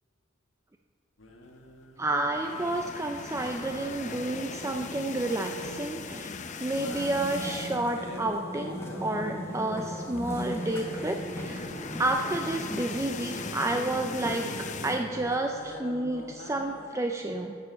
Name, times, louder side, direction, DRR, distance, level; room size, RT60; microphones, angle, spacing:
sound 1, 1.2-16.9, left 1 dB, 70° left, 1.4 m, -47 dB
voice 1, 2.0-6.3 6.6-11.7 12.0-17.6, right 2 dB, 15° right, 4 dB, 0.4 m, -30 dB
sound 2, 2.2-8.0 8.4-8.6 8.8-8.9 10.0-15.0, left 5 dB, 35° left, 0.6 m, -40 dB
sound 3, 6.7-15.6, equal, 15° left, 1.2 m, -39 dB
13.0 x 6.8 x 6.8 m, 2.6 s
head